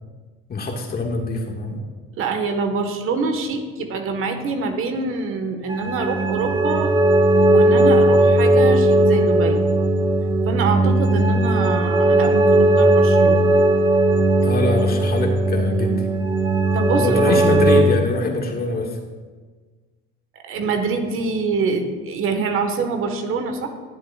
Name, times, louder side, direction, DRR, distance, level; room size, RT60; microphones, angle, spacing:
voice 1, 0.5-1.8 14.4-16.1 16.9-19.0, left 2 dB, 30° left, 2 dB, 1.8 m, -24 dB
voice 2, 2.2-6.9 7.5-9.6 10.5-13.5 16.7-17.4 20.3-23.7, right 4 dB, 45° right, 6 dB, 1.4 m, -25 dB
sound 1, 5.7-17.8, right 1 dB, 15° right, 1.5 m, -17 dB
20.5 x 7.8 x 2.4 m, 1.4 s
hypercardioid pair, 80°, 29 cm